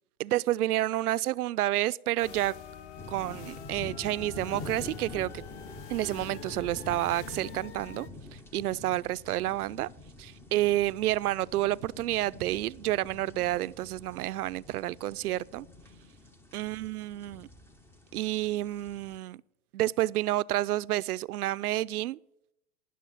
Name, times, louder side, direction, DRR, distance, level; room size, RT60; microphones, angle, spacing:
voice 1, 0.2-2.5 3.1-5.3 5.9-9.9 10.2-15.7 16.5-17.5 18.1-19.4 19.7-22.2, right 15 dB, 80° right, 0.6 m, -30 dB
sound 1, 2.2-8.1, left 7 dB, 30° left, 0.9 m, -46 dB
sound 2, 3.0-19.2, left 2 dB, 5° left, 0.5 m, -46 dB
18.5 x 6.5 x 8.8 m
hypercardioid pair, 125°, 44 cm